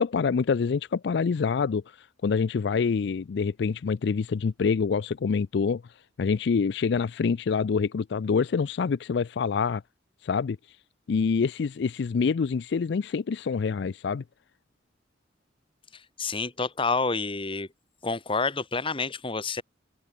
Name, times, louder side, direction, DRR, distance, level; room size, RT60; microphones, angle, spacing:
voice 1, 0.0-5.8 6.2-9.8 10.2-10.8 11.1-14.2, left 5 dB, 65° left, 0.4 m, -26 dB
voice 2, 15.9-17.7 18.0-19.6, left 4 dB, 30° left, 1.7 m, -29 dB
open air
head